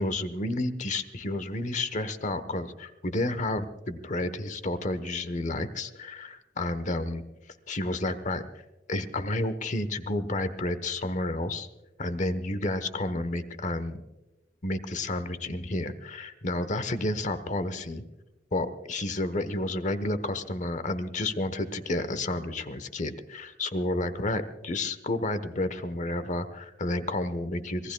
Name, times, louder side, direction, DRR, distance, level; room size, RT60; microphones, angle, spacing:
voice 1, 0.0-7.2 7.7-8.4 8.9-11.7 12.0-14.0 14.6-18.0 18.5-27.9, left 2 dB, 40° left, 12 dB, 1.0 m, -31 dB
26.0 x 19.5 x 2.3 m, 1.1 s
head